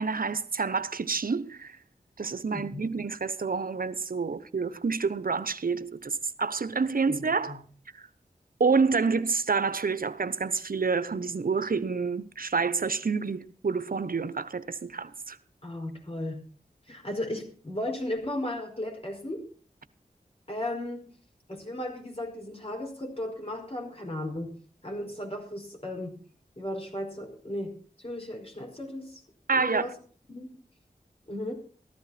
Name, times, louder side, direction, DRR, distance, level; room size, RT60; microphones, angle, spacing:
voice 1, 0.0-1.8 2.2-7.6 8.6-15.4 29.5-29.9, right 5 dB, 65° right, 0.9 m, -28 dB
voice 2, 2.5-2.9 7.1-7.6 15.6-16.4 16.9-19.4 20.5-21.1 21.5-24.5 24.8-26.2 26.6-29.2 29.5-29.9 30.3-30.5 31.3-31.5, left 1 dB, 35° left, 5.0 m, -35 dB
14.5 x 12.0 x 4.3 m
cardioid pair, 40°, 16 cm